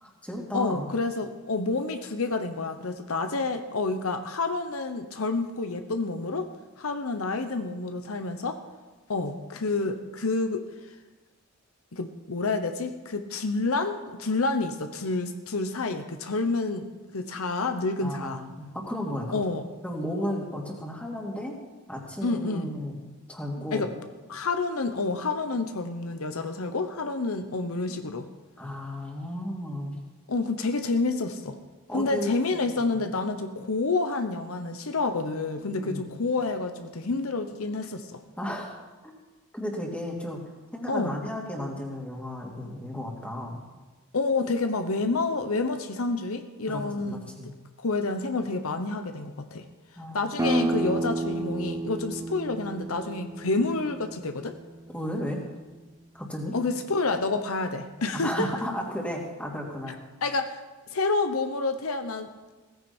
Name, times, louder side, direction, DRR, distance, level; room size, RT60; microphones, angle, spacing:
voice 1, 0.0-0.9 18.0-19.4 19.8-21.6 21.9-23.0 23.3-23.9 28.6-30.0 31.9-32.6 35.6-36.1 38.4-38.7 39.0-39.1 39.5-40.4 40.7-43.6 46.7-47.5 50.0-50.3 54.9-55.4 56.1-56.6 58.1-60.0, left 1 dB, 5° left, -1 dB, 2.7 m, -34 dB
voice 2, 0.5-6.5 6.8-8.6 9.1-10.7 11.9-16.9 17.1-18.4 19.3-19.6 22.2-22.7 23.7-23.9 24.3-28.3 30.3-31.6 31.9-38.2 40.9-41.2 44.1-47.5 47.8-49.7 50.1-54.6 56.5-58.5 60.2-60.6 60.9-62.5, left 3 dB, 75° left, 8 dB, 1.0 m, -29 dB
sound 1, 50.4-55.8, right 2 dB, 15° right, 0.6 m, -32 dB
17.0 x 15.0 x 4.5 m, 1.2 s
head